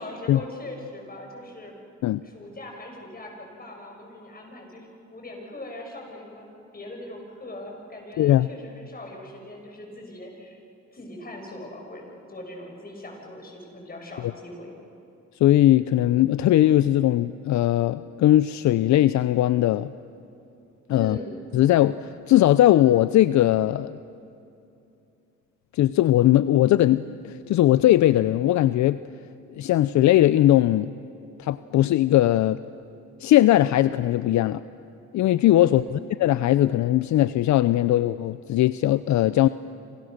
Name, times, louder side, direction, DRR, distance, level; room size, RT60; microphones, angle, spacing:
voice 1, 0.0-1.8 2.2-10.6 10.9-14.7 20.9-21.4 35.4-35.8, left 1 dB, 30° left, 1 dB, 6.6 m, -40 dB
voice 2, 8.2-8.5 15.4-19.9 20.9-21.2 21.5-24.0 25.7-29.0 29.5-30.9 31.4-32.6 33.2-34.6 35.1-39.5, left 13 dB, 70° left, 15 dB, 0.6 m, -19 dB
28.0 x 27.0 x 6.6 m, 2.7 s
cardioid pair, 90°, 30 cm